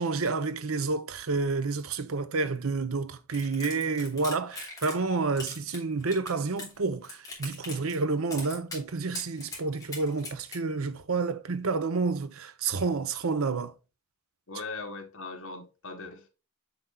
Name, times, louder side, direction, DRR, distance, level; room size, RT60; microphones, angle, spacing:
voice 1, 0.0-13.7, right 4 dB, 70° right, 0.7 m, -29 dB
sound 1, 3.3-5.1 5.4-6.8 7.0-8.0 8.3-8.8 9.1-10.6, left 3 dB, 15° left, 3.0 m, -40 dB
voice 2, 14.5-16.3, left 3 dB, 65° left, 1.7 m, -39 dB
6.9 x 6.0 x 2.3 m
head